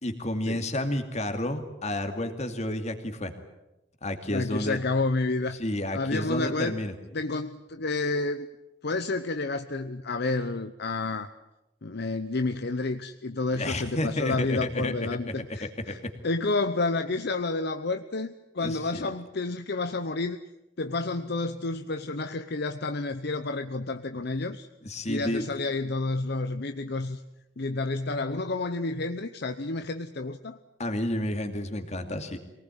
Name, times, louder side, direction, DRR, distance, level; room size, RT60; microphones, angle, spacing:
voice 1, 0.0-3.3 4.0-4.8 5.6-6.9 13.5-14.9 15.6-16.1 18.6-19.1 24.8-25.4 30.8-32.4, left 1 dB, 35° left, 7 dB, 2.5 m, -31 dB
voice 2, 4.3-5.6 5.9-6.7 7.1-8.5 8.8-11.3 11.8-20.4 20.8-24.7 25.1-27.2 27.6-30.6, left 3 dB, 60° left, 9 dB, 0.9 m, -30 dB
23.5 x 19.0 x 9.2 m, 0.96 s
head